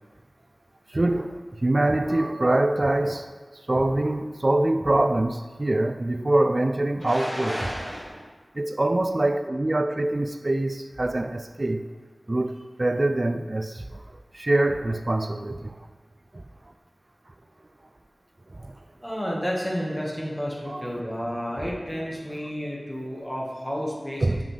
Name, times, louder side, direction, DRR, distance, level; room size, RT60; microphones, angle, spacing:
voice 1, 0.9-3.3 3.7-7.6 8.6-11.8 12.3-13.9 14.3-15.8 16.3-16.4 18.6-18.7 20.7-20.9 24.2-24.4, right 2 dB, 50° right, 0.4 m, -24 dB
voice 2, 7.0-8.2 19.0-24.4, equal, 10° left, 1.6 m, -31 dB
6.9 x 6.0 x 3.3 m
wide cardioid pair, 40°, 0 cm